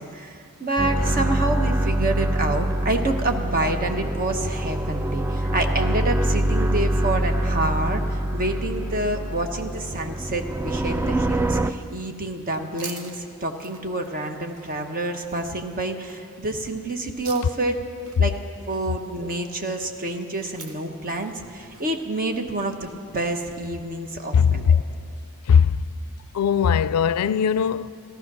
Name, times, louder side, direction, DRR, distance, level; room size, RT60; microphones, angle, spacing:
voice 1, 0.0-17.8 18.2-18.3 18.7-24.8, right 2 dB, 40° right, 1.1 m, -28 dB
sound 1, 0.8-11.7, right 1 dB, 10° right, 0.3 m, -25 dB
sound 2, 12.1-24.4, right 4 dB, 70° right, 1.3 m, -47 dB
voice 2, 24.3-24.8 25.5-25.9 26.3-27.9, left 7 dB, 85° left, 0.4 m, -19 dB
15.0 x 14.0 x 6.1 m
head